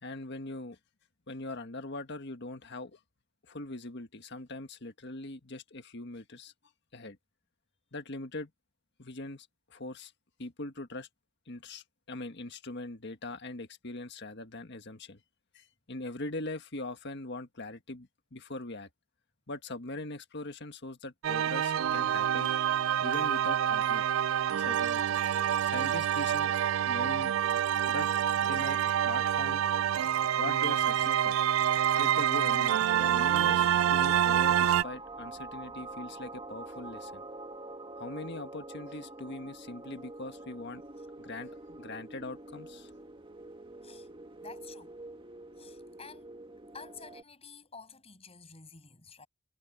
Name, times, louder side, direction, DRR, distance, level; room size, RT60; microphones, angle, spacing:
voice 1, 0.0-0.8 1.3-3.0 3.4-6.5 6.9-7.2 7.9-8.5 9.0-10.1 10.4-11.1 11.5-15.2 15.5-18.9 19.5-22.6 23.0-24.0 24.6-25.2 25.6-26.5 26.9-27.3 27.9-28.1 28.4-29.6 30.4-31.4 32.0-37.2 37.9-40.8 41.2-41.5 41.8-42.9, left 2 dB, 60° left, 1.7 m, -41 dB
sound 1, 21.2-34.8, right 10 dB, 90° right, 0.4 m, -27 dB
sound 2, 24.7-27.1 27.5-29.4 29.9-30.4 30.7-31.2 31.6-34.1, right 10 dB, 60° right, 6.9 m, -52 dB
sound 3, 32.9-47.2, right 2 dB, 25° right, 1.9 m, -45 dB
voice 2, 44.4-44.9 45.6-46.3 46.7-49.3, left 5 dB, 30° left, 7.2 m, -50 dB
head